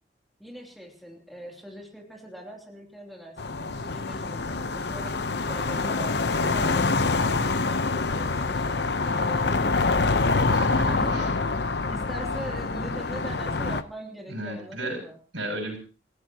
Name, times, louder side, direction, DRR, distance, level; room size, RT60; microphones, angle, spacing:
voice 1, 0.4-6.1 6.4-10.3 10.9-11.4 11.7-15.2, equal, ahead, 0 dB, 3.0 m, -42 dB
sound 1, 3.4-13.8, left 3 dB, 60° left, 0.9 m, -26 dB
sound 2, 4.4-12.3, left 3 dB, 80° left, 1.5 m, -43 dB
voice 2, 10.5-11.3 14.3-15.0 15.3-15.8, right 1 dB, 85° right, 4 dB, 7.2 m, -34 dB
28.5 x 16.0 x 3.0 m, 0.34 s
head